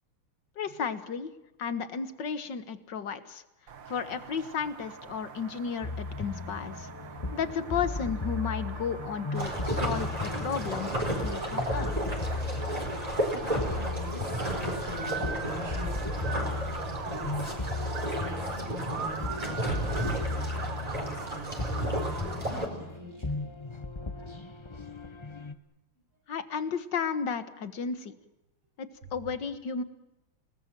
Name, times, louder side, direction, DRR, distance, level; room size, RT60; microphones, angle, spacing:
voice 1, 0.6-1.3 1.6-3.4 3.9-6.9 7.3-11.9 26.3-28.1 28.8-29.8, left 6 dB, 55° left, 11 dB, 2.0 m, -33 dB
sound 1, 3.7-22.5, right 7 dB, 60° right, 2.1 m, -43 dB
sound 2, 5.8-25.5, left 3 dB, 20° left, 0.7 m, -36 dB
sound 3, 9.3-22.7, right 1 dB, 15° right, 4.7 m, -33 dB
voice 2, 13.7-17.5 17.8-23.4, right 2 dB, 80° right, 0 dB, 9.2 m, -43 dB
29.5 x 19.0 x 7.6 m, 0.96 s
omnidirectional pair, 2.4 m